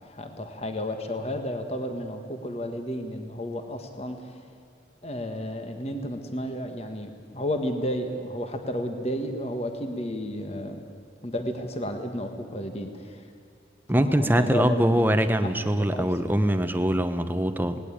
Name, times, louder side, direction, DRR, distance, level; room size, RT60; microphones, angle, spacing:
voice 1, 0.0-4.4 5.0-10.8 11.2-13.2 14.0-15.0 15.4-16.1, equal, 35° left, 6 dB, 1.7 m, -32 dB
voice 2, 13.9-17.8, equal, 10° right, 9 dB, 0.9 m, -23 dB
19.0 x 18.5 x 8.8 m, 2.5 s
head